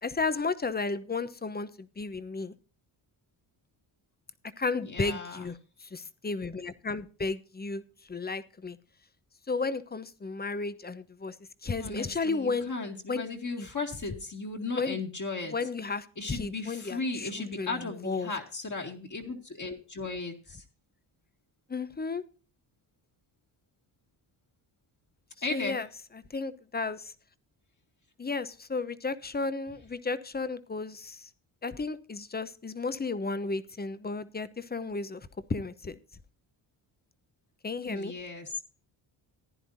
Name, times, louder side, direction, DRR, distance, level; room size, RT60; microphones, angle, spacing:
voice 1, 0.0-2.5 4.6-7.8 8.1-8.8 9.5-11.4 11.6-12.7 13.1-13.2 13.6-13.7 14.7-15.0 15.5-18.3 21.7-22.2 25.5-25.9 26.1-27.1 28.2-31.3 31.6-36.0 37.6-38.1, left 4 dB, 20° left, 14 dB, 0.8 m, -33 dB
voice 2, 4.8-5.5 11.8-15.6 16.2-20.6 25.4-25.8 37.8-38.6, left 3 dB, 40° left, 0 dB, 2.1 m, -36 dB
15.0 x 10.0 x 2.7 m, 0.35 s
cardioid pair, 75°, 47 cm